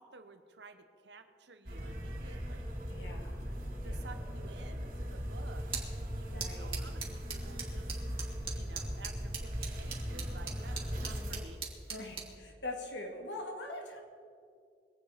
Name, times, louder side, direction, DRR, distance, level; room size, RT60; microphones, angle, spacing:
voice 1, 0.0-2.8 3.8-5.7 6.2-7.9 8.5-11.6 11.9-12.0, right 3 dB, 75° right, 8 dB, 1.2 m, -53 dB
sound 1, 1.6-11.4, equal, 50° right, 3.8 m, -39 dB
voice 2, 2.9-3.6 3.8-4.1 6.3-6.9 11.9-14.0, left 2 dB, 90° left, 2 dB, 2.6 m, -43 dB
sound 2, 5.5-12.4, right 5 dB, 30° right, 2.2 m, -44 dB
23.0 x 8.6 x 5.1 m, 2.3 s
head